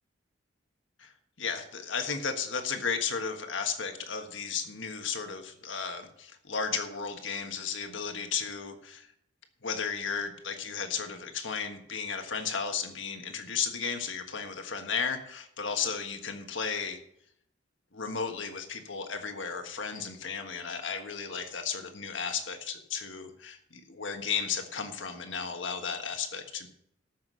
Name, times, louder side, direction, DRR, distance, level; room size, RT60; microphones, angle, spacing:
voice 1, 1.4-9.1 9.6-17.0 17.9-26.7, left 6 dB, 80° left, 6 dB, 1.5 m, -34 dB
13.5 x 6.1 x 6.2 m, 0.71 s
head